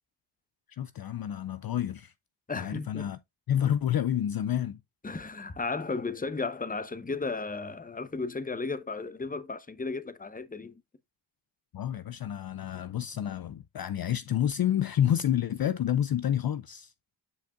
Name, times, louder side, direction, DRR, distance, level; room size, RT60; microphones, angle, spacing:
voice 1, 0.7-2.1 2.6-3.2 3.5-4.8 11.7-16.9, left 10 dB, 55° left, 0.5 m, -29 dB
voice 2, 2.5-3.1 5.0-10.8, left 3 dB, 20° left, 0.8 m, -34 dB
9.7 x 5.1 x 2.4 m
cardioid pair, 60°, 45 cm